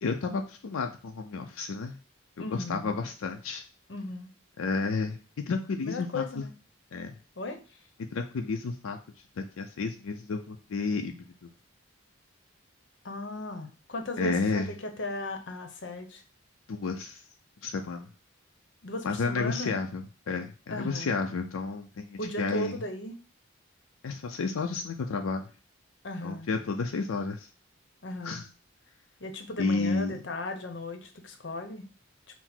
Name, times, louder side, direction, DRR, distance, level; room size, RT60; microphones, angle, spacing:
voice 1, 0.0-2.0 2.4-3.6 4.6-5.2 5.5-6.4 6.9-7.1 8.1-9.0 9.4-11.5 14.2-14.7 16.7-17.2 17.6-18.1 19.0-22.8 24.0-25.5 26.2-27.5 28.2-28.4 29.6-30.1, left 4 dB, 90° left, 4 dB, 0.4 m, -31 dB
voice 2, 2.4-3.0 3.9-4.3 5.8-6.5 7.4-7.8 13.0-16.2 18.8-19.7 20.7-21.2 22.2-23.2 26.0-26.5 28.0-28.5 29.2-31.8, left 1 dB, 60° left, 6 dB, 0.8 m, -36 dB
5.9 x 2.0 x 4.3 m, 0.35 s
head